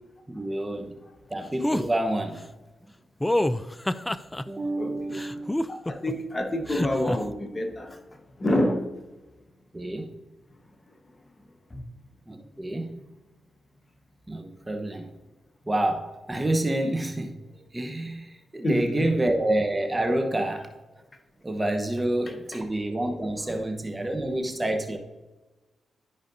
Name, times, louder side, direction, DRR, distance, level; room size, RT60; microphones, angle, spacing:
voice 1, 0.3-1.0 1.3-2.4 4.4-5.5 9.7-10.1 12.3-12.9 14.3-15.1 15.7-17.4 17.7-20.7 21.4-25.0, right 1 dB, 20° right, 4 dB, 1.1 m, -28 dB
sound 1, 1.6-1.9 3.2-4.4 5.1-6.1 6.7-7.2, left 1 dB, 15° left, 0.4 m, -26 dB
voice 2, 4.8-5.2 5.7-8.0 8.4-8.8 11.7-11.8 18.6-19.1 22.5-22.6 23.5-23.6, left 1 dB, 35° left, 4 dB, 1.2 m, -27 dB
12.5 x 5.1 x 2.7 m, 1.1 s
supercardioid pair, 55°, 0 cm